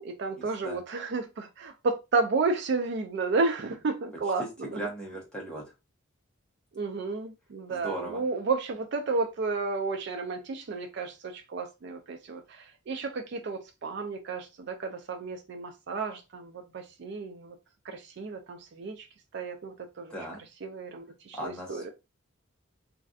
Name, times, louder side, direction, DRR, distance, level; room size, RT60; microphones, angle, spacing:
voice 1, 0.0-4.8 6.7-17.6 17.9-19.1 19.3-20.1 20.6-21.9, right 3 dB, 55° right, 0.4 m, -32 dB
voice 2, 4.7-5.6 7.7-8.2 20.1-20.4 21.3-21.9, right 1 dB, 5° left, 1.0 m, -37 dB
3.2 x 2.6 x 2.4 m
head